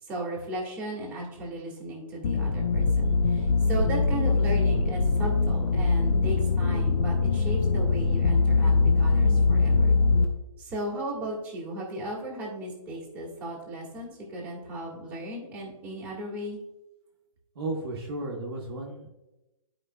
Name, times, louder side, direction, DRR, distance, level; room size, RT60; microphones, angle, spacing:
voice 1, 0.0-10.0 10.6-16.6, right 1 dB, 10° right, -5 dB, 1.6 m, -36 dB
sound 1, 2.2-10.3, left 3 dB, 25° left, 0.8 m, -23 dB
voice 2, 17.5-19.1, right 2 dB, 40° right, -1 dB, 1.2 m, -34 dB
12.0 x 5.0 x 2.2 m, 0.99 s
hypercardioid pair, 160°, 18 cm